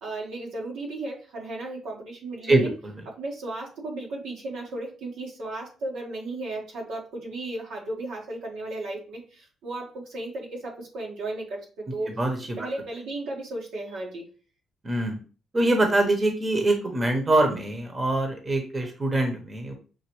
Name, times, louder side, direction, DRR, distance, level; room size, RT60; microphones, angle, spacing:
voice 1, 0.0-2.7 3.2-12.2 12.6-14.2, right 2 dB, 85° right, -2 dB, 1.5 m, -35 dB
voice 2, 2.5-3.0 12.2-12.7 14.8-15.2 15.5-19.7, right 2 dB, 25° right, 4 dB, 1.0 m, -24 dB
6.1 x 2.5 x 3.1 m, 0.37 s
cardioid pair, 90°, 0 cm